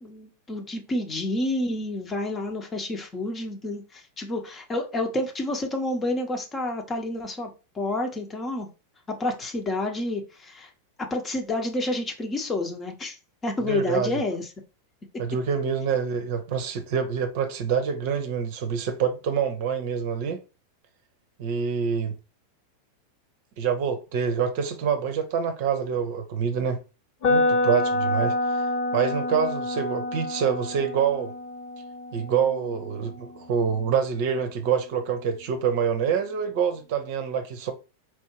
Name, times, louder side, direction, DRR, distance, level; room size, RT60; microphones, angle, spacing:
voice 1, 0.0-7.5 7.7-8.7 9.1-10.7 11.1-13.2 13.4-14.5, left 2 dB, 20° left, 1.0 m, -29 dB
voice 2, 13.6-14.2 15.2-20.4 21.4-22.2 23.6-26.8 27.3-28.7 28.9-31.3 32.1-37.7, right 7 dB, 50° right, 0.7 m, -26 dB
sound 1, 27.2-35.2, left 2 dB, 45° left, 1.2 m, -28 dB
4.6 x 2.7 x 2.9 m
figure-of-eight pair, 90°, 0 cm